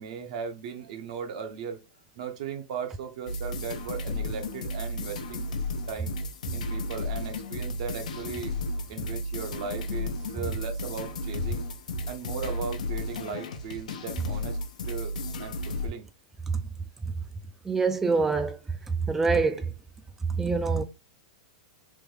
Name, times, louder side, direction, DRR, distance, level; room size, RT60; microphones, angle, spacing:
voice 1, 0.0-1.8 2.2-5.5 5.9-6.2 6.5-8.5 8.9-11.6 12.1-14.6 14.8-15.1 15.4-16.1 16.6-16.7, right 6 dB, 65° right, 0.8 m, -37 dB
sound 1, 3.3-15.9, left 2 dB, 85° left, 0.7 m, -33 dB
voice 2, 17.7-18.6 19.1-19.7 20.4-20.8, right 4 dB, 10° right, 0.3 m, -25 dB
3.5 x 2.2 x 3.2 m
hypercardioid pair, 135°, 4 cm